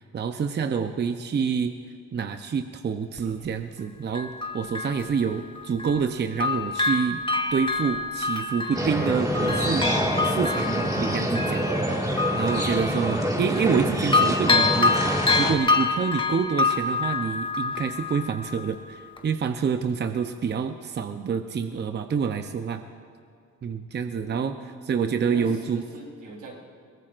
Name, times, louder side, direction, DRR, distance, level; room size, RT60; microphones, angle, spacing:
voice 1, 0.1-1.7 2.1-7.2 7.5-9.9 10.2-11.6 12.3-22.8 23.6-24.6 24.8-25.8, right 6 dB, 35° right, 7 dB, 0.7 m, -27 dB
Bell, 3.2-3.3 4.1-6.1 6.4-13.8 14.1-18.7 19.2-19.3, left 3 dB, 15° left, 1.1 m, -27 dB
sound 1, 8.7-15.5, equal, 10° right, 1.8 m, -26 dB
voice 2, 11.4-12.2 24.3-25.0 25.3-26.5, right 3 dB, 85° right, -2 dB, 3.7 m, -42 dB
22.0 x 18.0 x 2.5 m, 2.4 s
cardioid pair, 90°, 30 cm